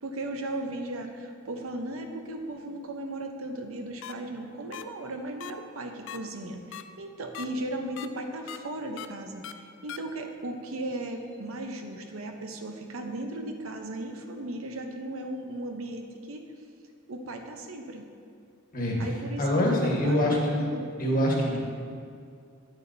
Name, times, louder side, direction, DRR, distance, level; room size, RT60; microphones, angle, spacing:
voice 1, 0.0-16.5 17.1-18.1 19.0-19.4 19.7-20.4 20.7-20.8, right 1 dB, 90° right, 4 dB, 0.7 m, -36 dB
sound 1, 4.0-4.1 4.7-4.8 5.4-5.5 6.1-6.2 6.7-6.8 7.3-7.5 8.0-8.1 8.5-8.6 9.0-9.1 9.4-9.5 9.9-10.0, left 10 dB, 65° left, 0.3 m, -38 dB
voice 2, 18.7-19.1 19.4-20.7 21.0-21.6, left 1 dB, 45° left, -2 dB, 1.4 m, -25 dB
9.0 x 8.5 x 2.7 m, 2.3 s
head